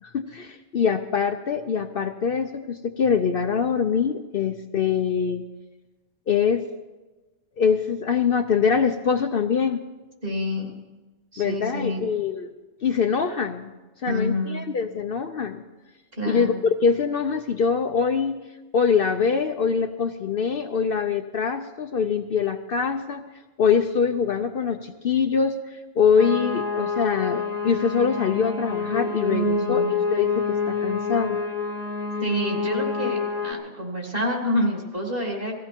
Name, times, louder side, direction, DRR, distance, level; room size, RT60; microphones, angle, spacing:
voice 1, 0.0-5.4 6.3-6.6 7.6-9.8 11.4-12.5 12.8-13.7 14.0-15.6 16.3-18.4 18.7-23.3 23.6-29.8 30.1-31.4, left 6 dB, 55° left, 7 dB, 0.8 m, -24 dB
voice 2, 10.2-10.8 11.3-12.1 14.0-14.7 16.1-16.6 29.3-30.1 32.2-35.5, equal, 50° right, -1 dB, 3.3 m, -28 dB
sound 1, 26.2-33.5, left 5 dB, 70° left, 1.7 m, -27 dB
18.5 x 15.5 x 4.4 m, 1.2 s
omnidirectional pair, 1.2 m